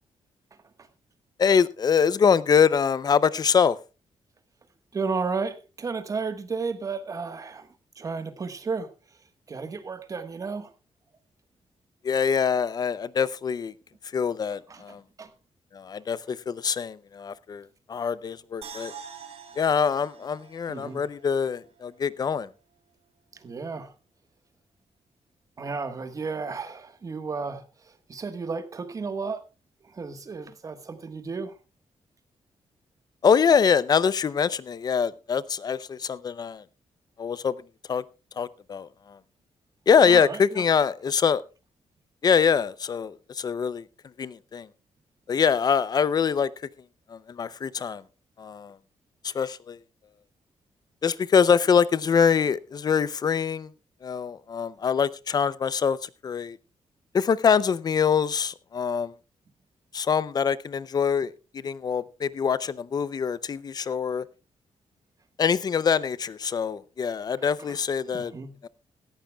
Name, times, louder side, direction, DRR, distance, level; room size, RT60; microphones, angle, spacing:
voice 1, 1.4-3.8 12.0-13.7 14.1-15.0 15.7-17.6 17.9-18.9 19.6-22.5 33.2-36.6 37.2-37.5 37.9-38.0 38.4-38.9 39.9-41.4 42.2-43.8 44.2-44.7 45.3-46.5 47.1-48.0 48.4-48.7 49.3-49.8 51.0-53.7 54.0-56.0 56.2-56.6 57.1-59.1 59.9-61.3 61.6-64.2 65.4-68.3 68.6-68.7, left 6 dB, 35° left, 0.6 m, -24 dB
voice 2, 4.9-7.7 7.9-8.9 9.5-10.7 14.7-15.3 20.7-21.0 23.3-23.9 25.6-27.6 28.1-29.4 29.8-31.5 40.0-40.6 67.4-67.8 68.1-68.6, right 4 dB, 30° right, 1.4 m, -33 dB
sound 1, 18.6-21.8 22.2-22.3, right 6 dB, 60° right, 2.6 m, -45 dB
17.5 x 14.5 x 2.3 m
wide cardioid pair, 180°, 11 cm